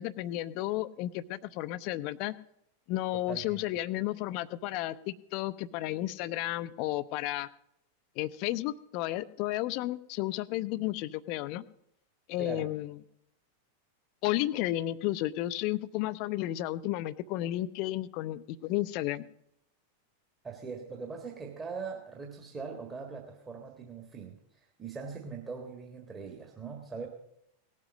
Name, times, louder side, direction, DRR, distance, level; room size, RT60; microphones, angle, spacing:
voice 1, 0.0-2.3 2.9-7.5 8.2-11.6 12.3-13.0 14.2-19.2, left 15 dB, 45° left, 16 dB, 0.6 m, -32 dB
voice 2, 3.3-3.6 12.4-12.7 20.4-27.1, right 5 dB, 20° right, 1 dB, 1.6 m, -41 dB
18.0 x 7.5 x 6.3 m, 0.77 s
figure-of-eight pair, 90°, 0 cm